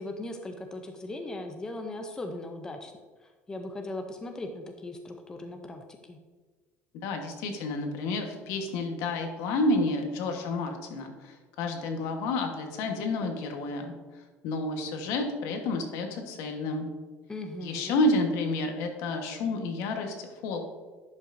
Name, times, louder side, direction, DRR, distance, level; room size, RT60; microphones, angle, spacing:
voice 1, 0.0-2.9 3.2-6.2 17.3-18.0, left 2 dB, 15° left, 5 dB, 0.5 m, -38 dB
voice 2, 7.0-13.9 14.4-16.9 17.6-20.6, left 2 dB, 70° left, 4 dB, 1.2 m, -30 dB
11.0 x 5.5 x 2.6 m, 1.4 s
cardioid pair, 155°, 5 cm